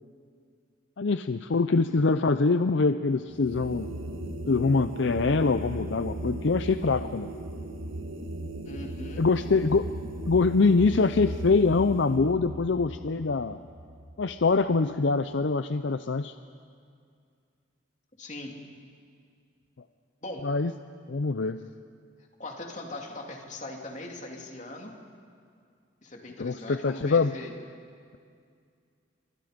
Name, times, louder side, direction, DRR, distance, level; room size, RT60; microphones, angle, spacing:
voice 1, 1.0-3.9 4.5-7.3 9.2-9.9 10.3-13.6 14.2-16.3 20.4-20.7 21.1-21.6 26.4-27.3, left 4 dB, 65° left, 10 dB, 0.6 m, -24 dB
sound 1, 3.3-14.6, right 1 dB, 85° right, 1.8 m, -37 dB
voice 2, 8.6-9.2 18.2-18.5 20.2-20.5 22.4-24.9 26.0-27.5, left 2 dB, 35° left, 1 dB, 2.8 m, -40 dB
29.5 x 24.0 x 5.2 m, 2.3 s
head